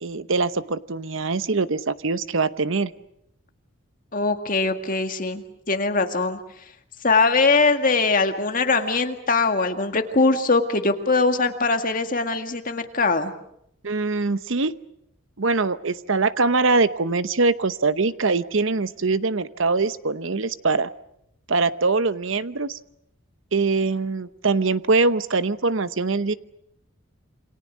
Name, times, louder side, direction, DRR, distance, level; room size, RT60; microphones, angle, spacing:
voice 1, 0.0-2.9 13.8-14.7 15.4-20.9 21.5-22.8 23.5-26.3, right 3 dB, 60° right, 14 dB, 0.9 m, -23 dB
voice 2, 4.1-6.4 7.0-13.3, left 3 dB, 40° left, 6 dB, 1.9 m, -21 dB
28.0 x 25.5 x 6.3 m, 0.76 s
head